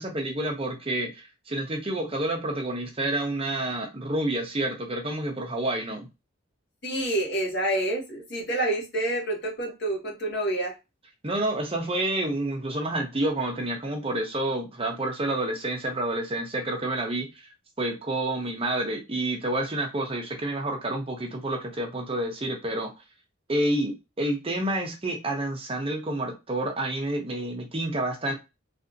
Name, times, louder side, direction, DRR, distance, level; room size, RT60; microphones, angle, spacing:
voice 1, 0.0-6.1 11.2-17.5 17.8-22.9 23.5-28.3, right 1 dB, 30° right, 2 dB, 0.8 m, -29 dB
voice 2, 6.8-10.8, right 1 dB, 55° left, -2 dB, 1.6 m, -28 dB
3.3 x 2.7 x 2.6 m, 0.24 s
head